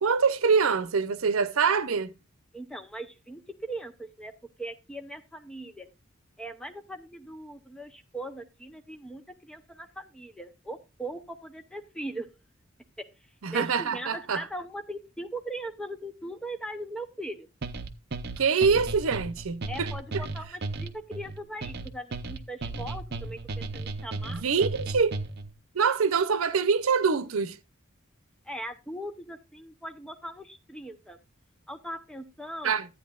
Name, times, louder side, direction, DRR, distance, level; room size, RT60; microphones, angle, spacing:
voice 1, 0.0-2.1 13.4-14.4 18.4-19.9 24.3-25.2 25.7-27.6 32.6-32.9, right 5 dB, 90° right, 0.7 m, -25 dB
voice 2, 2.5-4.3 4.6-5.9 6.4-12.3 13.0-13.1 13.5-17.5 19.7-24.4 28.4-31.2 31.7-32.8, right 1 dB, 5° left, 0.7 m, -39 dB
sound 1, 17.6-25.5, right 3 dB, 50° right, 0.6 m, -35 dB
12.5 x 8.9 x 2.4 m
head